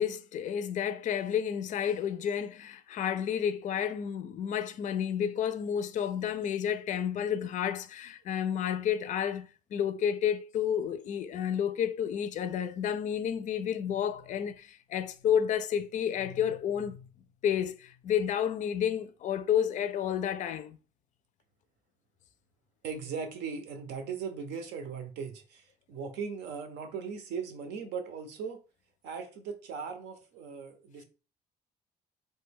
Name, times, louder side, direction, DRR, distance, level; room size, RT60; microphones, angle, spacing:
voice 1, 0.0-17.1 17.4-20.8, left 9 dB, 50° left, 0.4 m, -31 dB
voice 2, 22.8-28.6 29.0-31.0, right 6 dB, 85° right, 0.7 m, -38 dB
3.1 x 2.2 x 3.4 m
cardioid pair, 110°, 17 cm